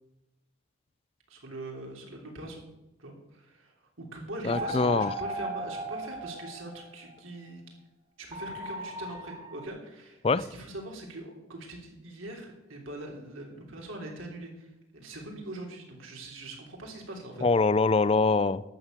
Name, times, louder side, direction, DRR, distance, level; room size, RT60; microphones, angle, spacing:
voice 1, 1.3-2.6 3.0-7.6 8.2-17.4, right 1 dB, 90° right, 0 dB, 3.3 m, -42 dB
voice 2, 4.4-5.1 10.2-10.4 17.4-18.6, left 3 dB, 30° left, 17 dB, 0.4 m, -23 dB
sound 1, 4.5-7.1 8.3-9.6, right 1 dB, 25° right, 1.0 m, -36 dB
12.0 x 7.3 x 8.1 m, 0.93 s
head